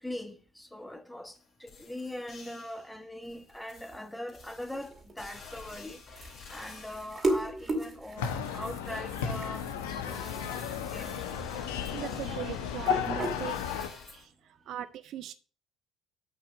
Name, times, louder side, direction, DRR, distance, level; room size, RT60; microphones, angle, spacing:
voice 1, 0.0-11.3, left 1 dB, 5° left, 1.2 m, -42 dB
sound 1, 1.3-1.4 1.7-2.9 3.2-7.3 10.1-14.3, left 5 dB, 50° left, 3.0 m, -48 dB
sound 2, 4.4-13.9, right 2 dB, 35° right, 2.3 m, -38 dB
sound 3, 8.2-13.9, left 8 dB, 80° left, 0.9 m, -34 dB
voice 2, 11.8-13.6 14.1-15.3, right 11 dB, 60° right, 0.5 m, -40 dB
6.8 x 5.4 x 5.9 m
hypercardioid pair, 60°, 0 cm